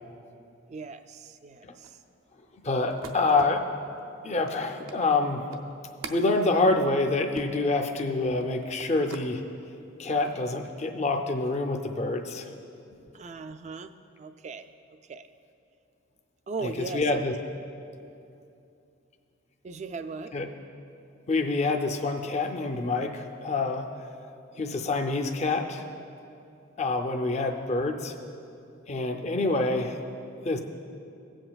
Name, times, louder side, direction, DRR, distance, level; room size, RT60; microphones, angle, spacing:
voice 1, 0.7-2.0 13.1-14.7 15.1-15.3 16.5-17.3 19.6-20.3, right 3 dB, 35° right, 9 dB, 0.3 m, -38 dB
sound 1, 1.8-9.3 9.8-10.4, right 4 dB, 75° right, 0.6 m, -46 dB
voice 2, 2.6-3.6 4.2-5.5 6.1-9.4 10.0-12.5 16.6-17.3 20.3-20.5 21.3-23.9 24.6-25.8 26.8-28.1 28.9-30.0 30.4-30.6, left 3 dB, 35° left, 3 dB, 0.5 m, -26 dB
17.5 x 7.7 x 2.3 m, 2.7 s
head